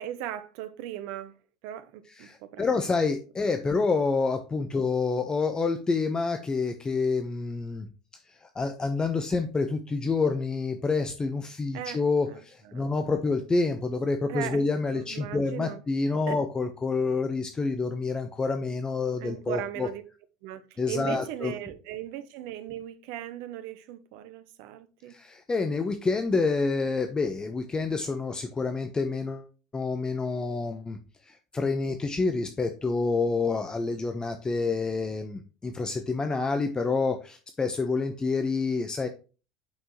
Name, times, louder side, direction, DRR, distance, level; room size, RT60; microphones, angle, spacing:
voice 1, 0.0-1.3 1.6-2.7 11.7-12.0 12.3-12.4 12.7-13.0 14.3-15.8 16.3-16.4 19.2-20.0 20.4-25.2, right 11 dB, 65° right, 1.0 m, -38 dB
voice 2, 2.2-7.9 8.3-19.9 20.8-21.5 25.1-29.5 29.7-31.0 31.2-39.1, left 4 dB, 20° left, 1.1 m, -28 dB
8.6 x 6.0 x 3.1 m
hypercardioid pair, 70°, 4 cm